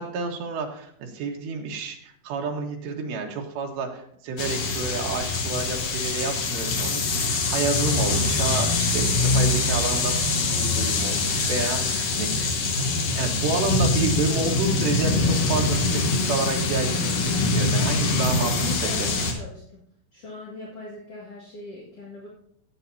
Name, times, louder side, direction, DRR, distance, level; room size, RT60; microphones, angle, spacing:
voice 1, 0.0-10.2 10.6-12.5 12.9-18.5 19.0-19.1, right 4 dB, 80° right, 1 dB, 3.6 m, -30 dB
sound 1, 4.4-19.3, left 3 dB, 70° left, 1.6 m, -24 dB
voice 2, 18.2-19.8 20.1-22.3, left 3 dB, 45° left, -6 dB, 2.2 m, -40 dB
18.0 x 8.3 x 2.8 m, 0.69 s
omnidirectional pair, 5.0 m